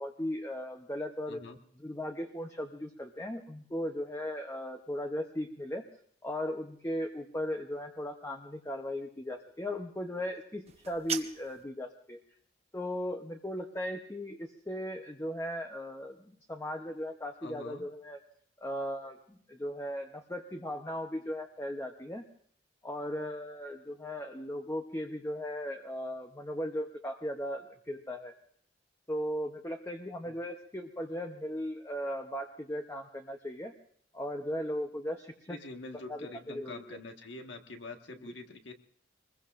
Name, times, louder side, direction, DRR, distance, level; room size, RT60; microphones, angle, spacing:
voice 1, 0.0-1.4 1.8-5.8 6.2-12.2 12.7-18.2 18.6-22.3 22.8-28.3 29.1-33.7 34.1-35.6 35.9-37.0 38.2-38.3, equal, 15° left, 4 dB, 0.8 m, -37 dB
sound 1, 10.6-11.7, right 7 dB, 35° right, 0.9 m, -38 dB
voice 2, 17.4-17.9 30.2-30.4 35.5-38.7, left 2 dB, 70° left, 4 dB, 1.6 m, -45 dB
25.0 x 21.0 x 2.6 m, 0.63 s
head